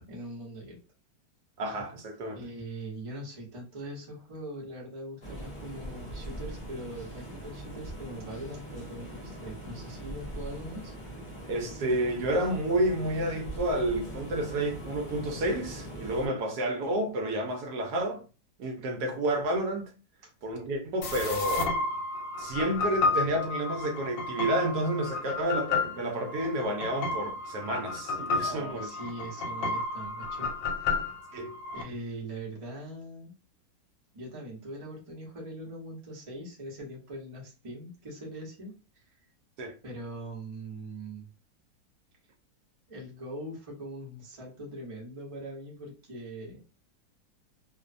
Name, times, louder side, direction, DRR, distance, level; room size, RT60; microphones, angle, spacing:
voice 1, 0.1-0.8 2.3-10.9 28.4-30.5 30.8-31.0 31.7-33.3 34.1-38.8 39.8-41.3 42.9-46.6, right 1 dB, 50° right, 0.3 m, -41 dB
voice 2, 1.6-2.4 11.5-18.2 18.6-19.9 20.4-21.7 22.4-28.9 31.3-31.6 39.6-39.8, right 1 dB, 70° right, 1.0 m, -30 dB
sound 1, 5.2-16.3, right 1 dB, 40° left, 0.8 m, -41 dB
sound 2, 21.0-31.8, left 3 dB, 80° left, 1.3 m, -32 dB
3.0 x 2.0 x 2.4 m
omnidirectional pair, 2.0 m